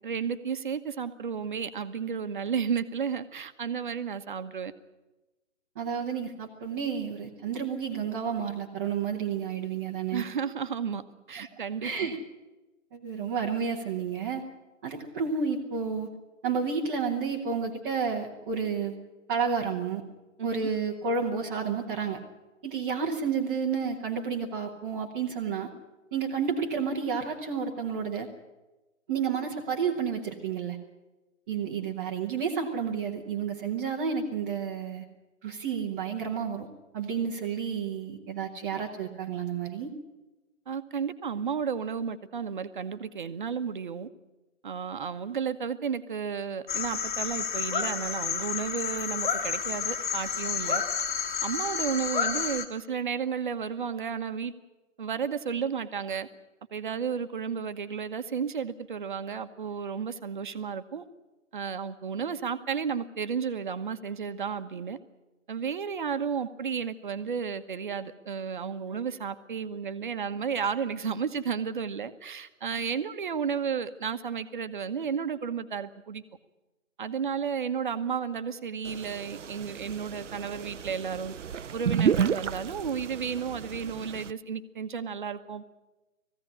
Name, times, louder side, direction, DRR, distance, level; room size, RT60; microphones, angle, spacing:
voice 1, 0.0-4.7 10.1-11.0 11.3-11.9 20.4-20.5 40.7-44.1 44.6-50.8 51.4-54.5 55.0-56.3 56.7-61.0 61.5-65.0 65.5-76.2 77.0-81.3 81.7-85.6, right 6 dB, 40° right, 10 dB, 1.1 m, -32 dB
voice 2, 5.7-10.2 11.4-11.5 11.8-12.2 12.9-14.4 14.8-16.1 16.4-19.0 19.3-20.0 20.4-22.2 22.6-25.7 26.1-28.3 29.1-30.8 31.5-35.0 35.4-36.7 36.9-39.9, right 6 dB, 10° right, -4 dB, 0.9 m, -31 dB
sound 1, 46.7-52.7, left 7 dB, 35° left, 2.2 m, -30 dB
sound 2, 78.9-84.3, right 8 dB, 65° right, 0.7 m, -31 dB
19.5 x 15.5 x 9.9 m, 1.1 s
hypercardioid pair, 160°, 40 cm